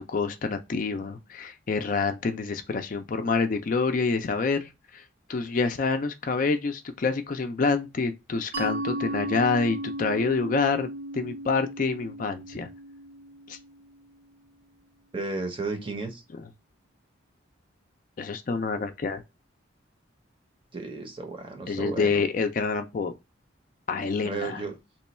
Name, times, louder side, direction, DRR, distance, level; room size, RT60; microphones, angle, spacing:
voice 1, 0.0-5.0 5.3-12.7 13.5-13.6 18.2-19.2 21.7-23.1 23.9-24.6, left 4 dB, 45° left, 0.4 m, -27 dB
Mallet percussion, 8.5-13.9, right 1 dB, 75° right, 0.9 m, -35 dB
voice 2, 15.1-16.2 20.7-22.2 24.2-24.8, right 3 dB, 25° right, 0.7 m, -33 dB
3.0 x 2.2 x 4.1 m
head